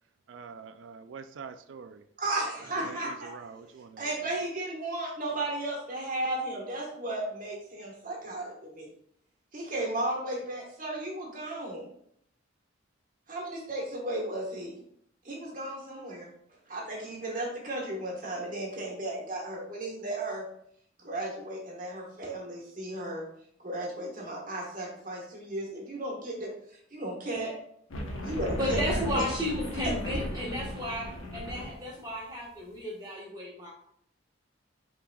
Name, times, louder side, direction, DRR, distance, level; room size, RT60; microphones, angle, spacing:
voice 1, 0.3-2.0 2.8-4.1, right 6 dB, 70° right, 10 dB, 0.3 m, -45 dB
voice 2, 2.2-3.3 4.0-8.9 9.5-11.9 13.3-14.7 15.2-16.3 16.7-20.4 21.0-23.2 23.6-26.5 26.9-27.5 28.2-28.8 29.1-29.2, right 1 dB, 40° right, -2 dB, 1.3 m, -34 dB
sound 1, 27.9-31.9, equal, 85° left, 1.0 m, -35 dB
voice 3, 28.1-33.7, equal, 20° right, -4 dB, 1.3 m, -34 dB
5.7 x 3.8 x 2.3 m, 0.69 s
head